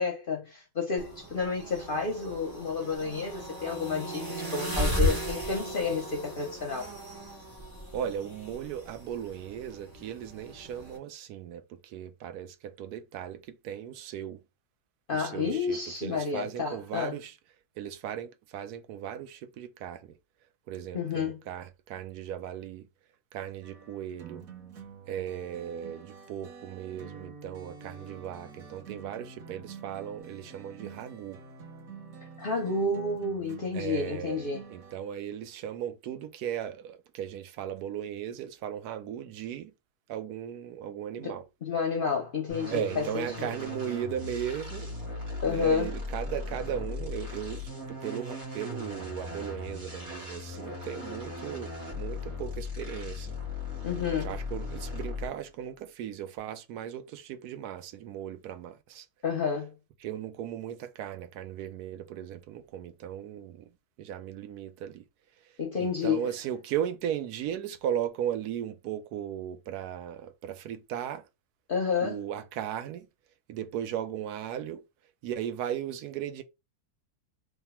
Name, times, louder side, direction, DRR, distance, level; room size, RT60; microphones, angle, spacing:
voice 1, 0.0-6.9 15.1-17.2 20.9-21.4 32.4-34.6 41.2-43.6 45.4-45.9 53.8-54.4 59.2-59.8 65.6-66.3 71.7-72.2, left 5 dB, 55° left, 0.6 m, -30 dB
sound 1, 1.0-11.0, equal, 15° right, 0.9 m, -35 dB
voice 2, 7.9-14.4 15.1-17.4 17.8-20.2 20.7-22.9 23.3-24.5 25.1-31.4 33.7-39.7 40.1-41.4 42.7-44.9 45.5-53.3 54.2-59.1 60.0-63.7 64.0-65.0 65.8-71.2 72.0-73.1 73.5-74.8 75.2-76.4, right 10 dB, 80° right, 1.1 m, -37 dB
sound 2, 23.6-34.9, right 5 dB, 65° right, 1.3 m, -48 dB
sound 3, 42.5-55.5, left 3 dB, 50° right, 1.5 m, -38 dB
3.3 x 2.3 x 4.2 m
omnidirectional pair, 1.7 m